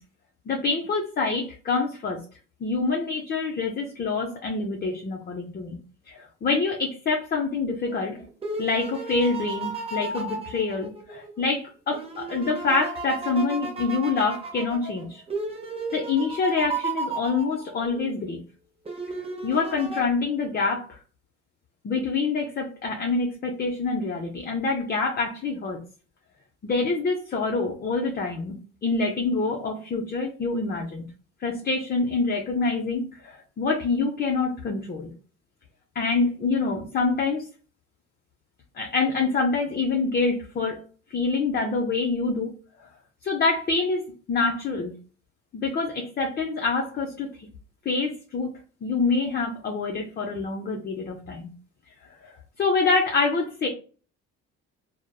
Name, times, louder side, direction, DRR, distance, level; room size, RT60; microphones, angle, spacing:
voice 1, 0.5-2.2 2.6-5.8 6.1-8.2 8.6-15.2 15.9-18.4 19.4-21.0 21.8-25.8 26.6-28.5 28.8-31.1 31.4-35.1 36.0-37.4 38.8-40.8 41.1-42.5 43.2-44.9 45.5-47.5 47.9-48.5 48.8-51.5 52.6-53.7, left 4 dB, 30° left, 2 dB, 0.5 m, -26 dB
sound 1, 7.9-11.4 11.9-18.1 18.9-20.0, right 3 dB, 20° right, 0.6 m, -34 dB
3.2 x 2.0 x 2.2 m, 0.38 s
cardioid pair, 100°, 31 cm